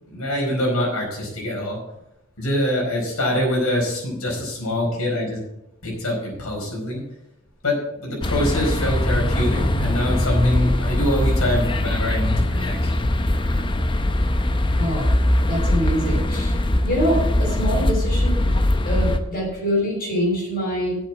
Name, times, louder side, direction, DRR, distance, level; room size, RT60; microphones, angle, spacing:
voice 1, 0.1-1.8 2.4-5.4 5.8-7.0 7.6-12.9, left 1 dB, 85° left, -2 dB, 4.8 m, -24 dB
sound 1, 8.2-19.2, left 1 dB, 20° left, 0.7 m, -21 dB
voice 2, 14.8-15.1 15.5-16.5 16.8-18.5 18.8-21.0, equal, 45° left, -3 dB, 5.3 m, -24 dB
8.4 x 8.1 x 7.4 m, 0.84 s
head